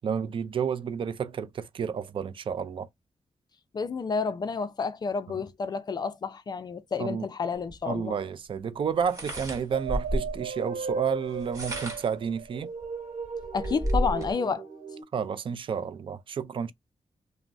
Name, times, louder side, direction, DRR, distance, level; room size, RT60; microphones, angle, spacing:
voice 1, 0.0-2.9 5.3-5.4 7.0-7.3 7.9-12.7 15.1-16.7, right 7 dB, 50° right, 0.4 m, -31 dB
voice 2, 3.7-8.2 13.5-14.7, left 5 dB, 40° left, 0.4 m, -30 dB
sound 1, 7.7-7.8 9.0-10.4 11.3-12.2 12.8-12.9 13.2-14.3, equal, 30° right, 1.0 m, -31 dB
sound 2, 9.7-15.0, right 5 dB, 75° right, 0.9 m, -36 dB
3.3 x 2.0 x 2.5 m
wide cardioid pair, 160°, 11 cm